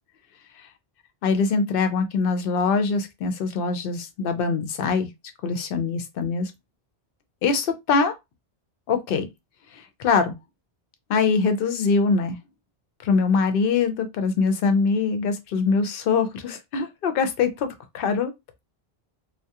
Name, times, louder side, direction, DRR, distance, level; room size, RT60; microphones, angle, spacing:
voice 1, 1.2-5.1 5.4-6.5 7.4-8.1 8.9-9.3 9.7-10.3 11.1-12.4 13.0-18.3, left 4 dB, 65° left, 0.7 m, -23 dB
2.3 x 2.2 x 2.7 m
omnidirectional pair, 1.1 m